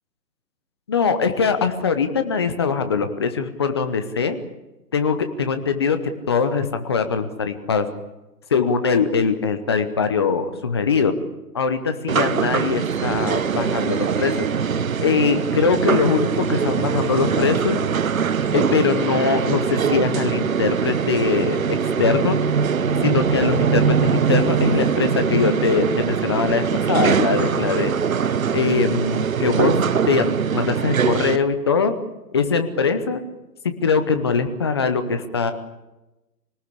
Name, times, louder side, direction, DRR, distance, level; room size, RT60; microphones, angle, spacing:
voice 1, 0.9-4.4 4.9-6.0 6.3-7.9 8.5-11.1 11.5-14.3 15.0-17.8 18.5-21.6 22.0-22.4 23.0-27.9 28.5-29.7 30.1-31.9 32.3-33.2 33.6-35.5, left 5 dB, 15° left, 9 dB, 0.8 m, -22 dB
sound 1, 12.1-31.4, right 6 dB, 55° right, 1.1 m, -22 dB
25.0 x 19.0 x 8.5 m, 1.0 s
figure-of-eight pair, 150°, 50 cm